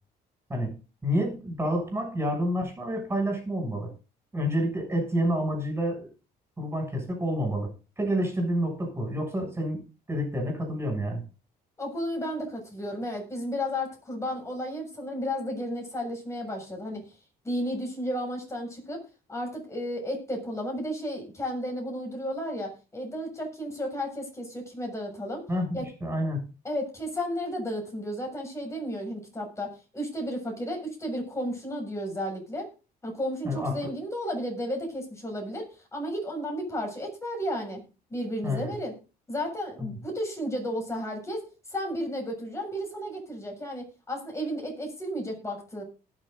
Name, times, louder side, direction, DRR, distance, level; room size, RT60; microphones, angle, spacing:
voice 1, 1.0-3.9 4.3-6.1 6.6-7.7 8.0-9.8 10.1-11.2 25.5-26.4 33.4-33.9 38.4-38.7 39.8-40.0, equal, 15° right, 3 dB, 7.1 m, -28 dB
voice 2, 11.8-17.0 17.4-19.0 19.3-25.4 25.7-25.9 26.6-32.7 33.0-37.8 38.1-38.9 39.3-41.4 41.7-45.8, equal, 15° left, 1 dB, 7.0 m, -33 dB
19.5 x 7.5 x 4.0 m, 0.33 s
cardioid pair, 110°, 17 cm